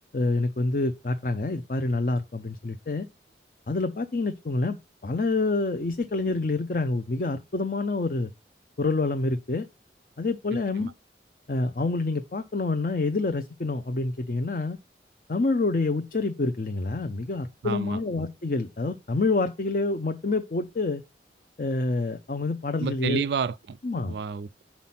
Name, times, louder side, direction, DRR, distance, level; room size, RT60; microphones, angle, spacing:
voice 1, 0.1-3.1 3.7-4.8 5.0-8.3 8.8-9.7 10.2-10.9 11.5-14.8 15.3-21.0 21.6-23.2 23.8-24.1, left 3 dB, 50° left, 0.5 m, -27 dB
voice 2, 17.6-18.0 22.8-23.8 24.1-24.6, right 5 dB, 70° right, 0.3 m, -30 dB
5.8 x 4.2 x 5.6 m
head